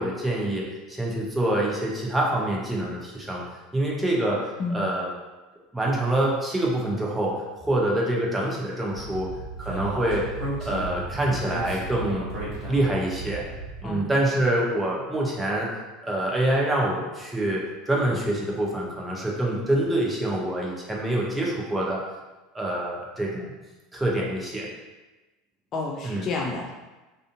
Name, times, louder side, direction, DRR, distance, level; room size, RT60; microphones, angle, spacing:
voice 1, 0.0-3.4 3.7-4.4 4.7-5.1 5.7-9.3 9.6-10.3 10.6-12.3 12.7-13.4 13.8-15.7 16.0-22.0 22.5-23.5 23.9-24.7 26.0-26.2, right 1 dB, 10° right, -3 dB, 0.6 m, -26 dB
Speech, 8.9-13.8, right 2 dB, 40° right, 1.2 m, -34 dB
voice 2, 25.7-26.7, left 3 dB, 40° left, -1 dB, 0.4 m, -30 dB
2.5 x 2.4 x 2.4 m, 1.1 s
figure-of-eight pair, 75°, 0 cm